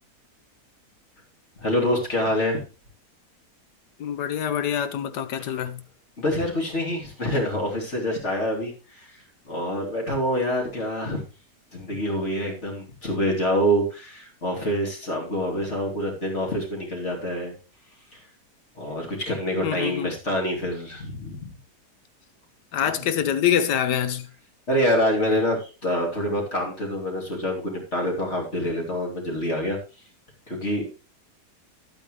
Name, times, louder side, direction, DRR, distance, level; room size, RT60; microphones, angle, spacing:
voice 1, 1.6-2.6 5.4-5.5 6.2-9.1 9.4-11.2 11.7-17.5 18.1-18.2 18.8-21.5 22.9-23.1 24.7-29.8 30.5-30.9, equal, 40° left, 3.1 m, -26 dB
voice 2, 4.0-5.8 19.6-20.1 22.7-24.3, left 9 dB, 85° left, 1.4 m, -25 dB
10.5 x 8.8 x 3.2 m
omnidirectional pair, 1.7 m